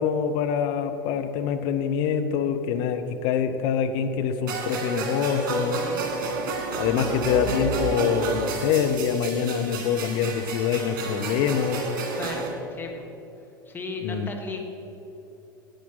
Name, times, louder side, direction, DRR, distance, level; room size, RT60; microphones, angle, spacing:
voice 1, 0.0-5.8 6.8-11.9 14.0-14.3, left 7 dB, 50° left, 7 dB, 0.9 m, -25 dB
sound 1, 4.5-12.5, right 3 dB, 55° right, 2.3 m, -30 dB
voice 2, 5.6-6.0 12.2-13.1 13.7-14.6, left 3 dB, 15° left, 1 dB, 1.6 m, -36 dB
10.5 x 8.3 x 5.8 m, 3.0 s
figure-of-eight pair, 80°, 11 cm